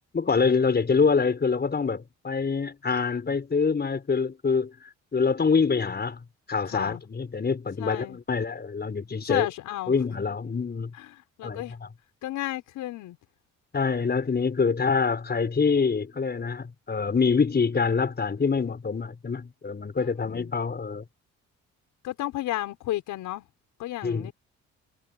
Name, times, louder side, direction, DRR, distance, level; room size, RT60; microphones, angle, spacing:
voice 1, 0.1-4.7 5.1-6.2 6.5-9.5 9.9-10.9 11.4-11.9 13.7-21.0 24.0-24.3, left 5 dB, 35° left, 5.8 m, -25 dB
voice 2, 6.6-7.0 7.8-8.2 9.3-9.9 10.9-11.7 12.2-13.2 20.0-20.5 22.0-23.4 23.8-24.3, left 15 dB, 90° left, 6.0 m, -33 dB
cardioid pair, 90°, 30 cm